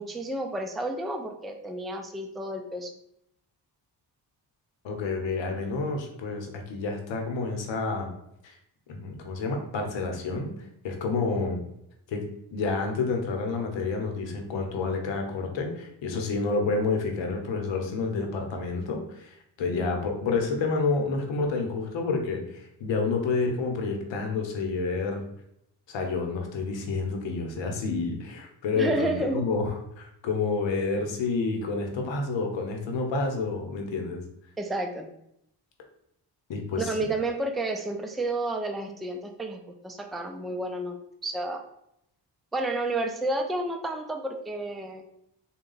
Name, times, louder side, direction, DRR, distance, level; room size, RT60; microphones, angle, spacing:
voice 1, 0.0-2.9 19.7-20.0 28.7-29.4 34.6-35.1 36.8-41.0 41.2-41.6 42.5-45.0, right 2 dB, ahead, 3 dB, 0.4 m, -31 dB
voice 2, 4.8-8.1 8.4-8.6 8.9-10.5 10.8-11.6 12.1-12.2 12.5-25.2 25.9-34.2 36.5-37.0, left 4 dB, 90° left, 3 dB, 0.8 m, -29 dB
3.7 x 2.3 x 3.9 m, 0.77 s
cardioid pair, 75°, 43 cm